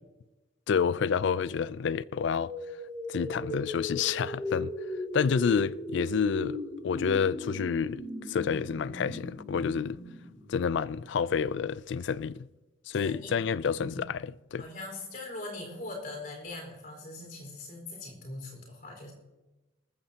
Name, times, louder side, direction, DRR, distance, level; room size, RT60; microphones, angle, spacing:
voice 1, 0.7-2.5 3.1-4.7 5.1-6.6 6.8-10.0 10.5-12.5 12.9-14.6, left 6 dB, 65° left, 0.3 m, -29 dB
sound 1, 2.1-11.0, left 1 dB, 25° left, 5.6 m, -38 dB
voice 2, 12.9-13.3 13.8-14.0 14.6-19.1, left 2 dB, 45° left, 4.5 m, -41 dB
19.5 x 14.5 x 2.8 m
head